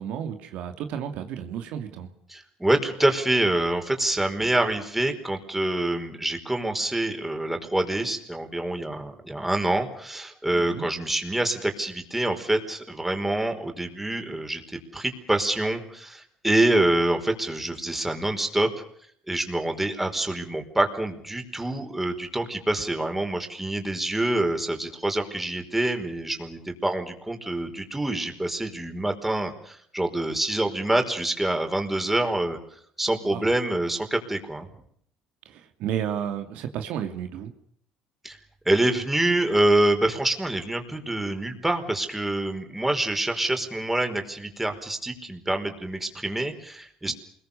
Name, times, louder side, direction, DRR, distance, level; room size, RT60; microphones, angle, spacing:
voice 1, 0.0-2.1 10.5-10.9 33.2-33.5 35.5-37.5, right 9 dB, 70° right, 7 dB, 2.6 m, -32 dB
voice 2, 2.3-14.6 14.9-18.7 19.3-34.7 38.2-38.4 38.6-47.1, right 1 dB, 10° right, 5 dB, 5.0 m, -26 dB
28.5 x 22.0 x 7.0 m, 0.66 s
supercardioid pair, 85°, 2 cm